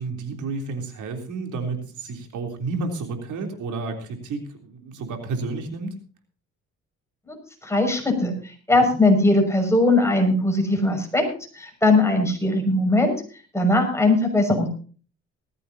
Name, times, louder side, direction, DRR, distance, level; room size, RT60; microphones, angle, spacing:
voice 1, 0.0-6.0 8.8-8.9, right 3 dB, 80° right, 4 dB, 3.5 m, -31 dB
voice 2, 7.6-11.2 11.5-13.1 13.5-14.7, left 2 dB, 10° left, 3 dB, 6.1 m, -20 dB
19.0 x 15.0 x 2.8 m, 0.39 s
cardioid pair, 90°, 30 cm